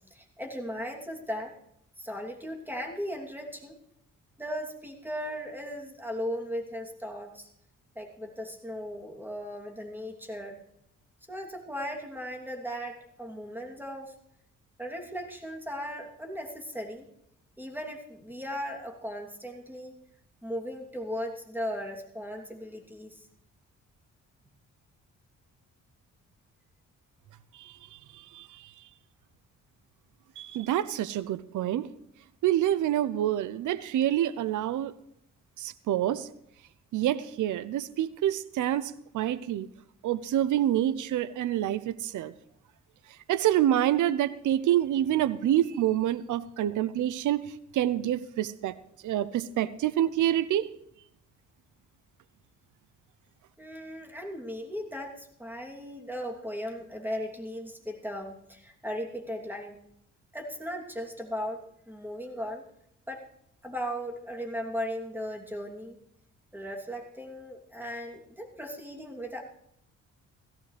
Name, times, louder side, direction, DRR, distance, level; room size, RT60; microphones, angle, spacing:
voice 1, 0.1-1.5 2.0-3.8 4.4-7.5 7.9-10.6 11.3-14.1 14.8-17.1 17.6-19.9 20.4-23.3 53.6-59.8 60.3-62.6 63.1-63.2 63.6-66.0 66.5-69.4, equal, 5° right, 1 dB, 2.9 m, -37 dB
voice 2, 30.4-31.9 32.4-34.9 35.6-36.3 36.9-39.7 40.0-42.3 43.3-47.5 47.7-48.7 49.0-50.7, right 12 dB, 75° right, 16 dB, 0.7 m, -27 dB
16.5 x 15.0 x 3.3 m, 0.72 s
cardioid pair, 70°, 31 cm